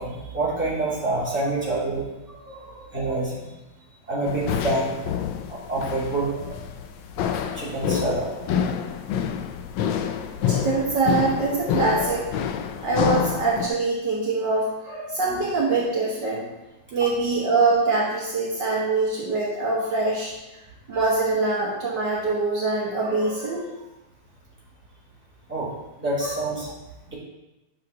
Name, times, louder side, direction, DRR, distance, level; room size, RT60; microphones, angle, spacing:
voice 1, 0.0-2.0 2.9-3.4 4.1-5.0 5.5-6.3 7.5-8.3 17.0-17.1 25.5-25.7 26.0-26.7 27.1-27.2, right 2 dB, 5° right, -9 dB, 2.5 m, -26 dB
voice 2, 2.5-2.9 6.3-6.4 10.5-12.2 12.8-16.5 16.9-20.3 20.9-23.7 26.2-26.4, right 3 dB, 60° right, -5 dB, 1.9 m, -24 dB
sound 1, 4.3-13.7, left 8 dB, 75° left, 1.3 m, -28 dB
9.8 x 6.0 x 2.8 m, 1.0 s
omnidirectional pair, 2.2 m